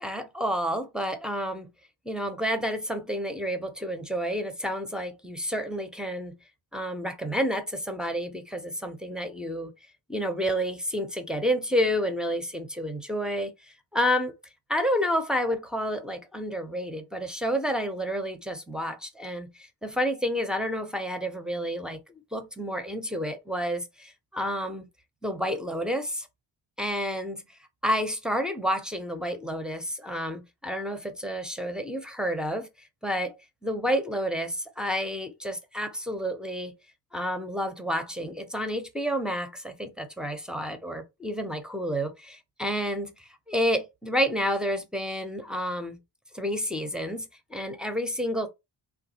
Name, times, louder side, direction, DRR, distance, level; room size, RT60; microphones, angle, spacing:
voice 1, 0.0-1.7 2.1-6.4 6.7-9.7 10.1-13.5 13.9-14.3 14.7-24.9 25.2-26.3 26.8-27.4 27.8-32.7 33.0-33.4 33.6-36.7 37.1-46.0 46.3-48.5, equal, ahead, 0.5 m, -30 dB
3.2 x 2.3 x 2.7 m
cardioid pair, 85°, 48 cm